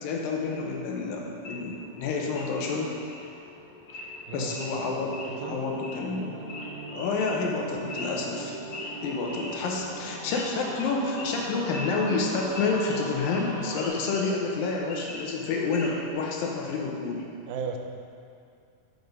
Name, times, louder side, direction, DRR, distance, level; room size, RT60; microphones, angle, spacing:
voice 1, 0.0-2.9 4.3-6.3 6.9-8.6 9.0-17.2, left 4 dB, 75° left, 0 dB, 2.5 m, -29 dB
Wild animals / Idling, 1.4-16.1, left 2 dB, 55° left, 2.1 m, -42 dB
voice 2, 4.3-5.6 9.6-9.9 10.3-10.4 17.5-17.8, right 5 dB, 85° right, 4 dB, 2.4 m, -38 dB
sound 1, 4.6-13.9, right 2 dB, 70° right, 2.7 m, -40 dB
8.0 x 5.4 x 5.3 m, 2.4 s
omnidirectional pair, 4.2 m